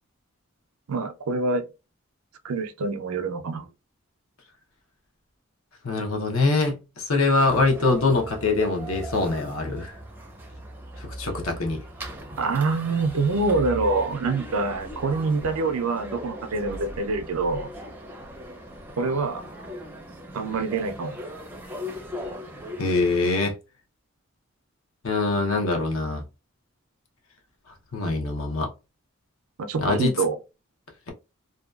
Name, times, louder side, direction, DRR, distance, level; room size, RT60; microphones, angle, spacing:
voice 1, 0.9-1.6 2.4-3.7 12.4-17.7 19.0-19.5 20.3-21.2 29.6-30.4, right 3 dB, 90° right, 0.5 m, -25 dB
voice 2, 5.8-9.9 11.0-11.8 22.8-23.5 25.0-26.2 27.9-28.7 29.8-30.1, left 3 dB, 75° left, 0.7 m, -23 dB
sound 1, 7.4-23.3, equal, 10° right, 0.4 m, -39 dB
2.7 x 2.2 x 2.3 m
head